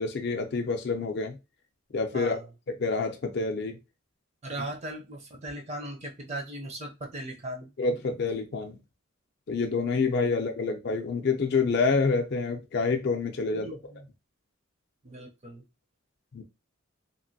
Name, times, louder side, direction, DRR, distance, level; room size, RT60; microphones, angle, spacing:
voice 1, 0.0-1.4 1.9-2.4 2.8-3.8 7.8-8.8 9.5-13.7 16.3-16.4, left 4 dB, 50° left, 4 dB, 0.4 m, -27 dB
voice 2, 2.1-2.4 4.4-7.7 13.5-14.1 15.0-15.6, right 1 dB, 30° right, 3 dB, 0.5 m, -38 dB
2.9 x 2.5 x 2.7 m, 0.26 s
head